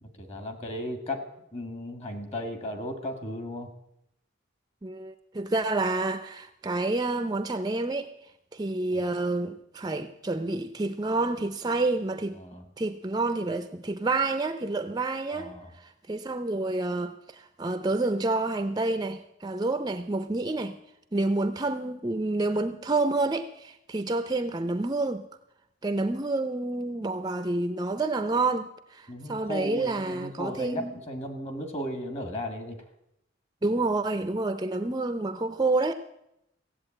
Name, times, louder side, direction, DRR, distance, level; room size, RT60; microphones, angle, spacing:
voice 1, 0.0-1.3 1.5-3.7 8.9-9.0 12.3-12.7 15.3-15.7 29.1-32.8, left 1 dB, 35° left, 1.9 m, -35 dB
voice 2, 4.8-8.1 8.5-12.4 12.8-15.5 16.1-20.8 21.1-25.2 25.8-30.9 33.6-35.9, right 2 dB, 20° right, 0.5 m, -28 dB
16.0 x 8.1 x 8.8 m
head